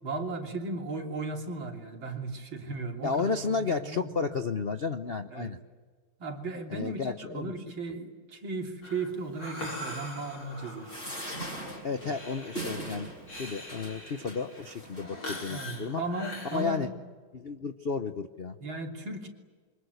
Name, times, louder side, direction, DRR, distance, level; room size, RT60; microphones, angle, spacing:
voice 1, 0.0-4.3 5.2-5.6 6.2-10.9 12.0-12.1 15.5-16.9 18.6-19.3, right 3 dB, 70° right, 2 dB, 4.0 m, -36 dB
voice 2, 3.0-5.6 6.7-7.5 11.8-13.1 13.4-16.0 16.4-16.9 17.3-18.6, left 4 dB, 50° left, 8 dB, 0.7 m, -32 dB
Breathing, 8.8-16.6, left 1 dB, 75° left, 6.8 m, -43 dB
sound 1, 10.8-15.4 16.0-16.2 16.4-16.5, right 1 dB, 25° left, 6.5 m, -41 dB
28.0 x 24.5 x 8.1 m, 1.5 s
omnidirectional pair, 2.2 m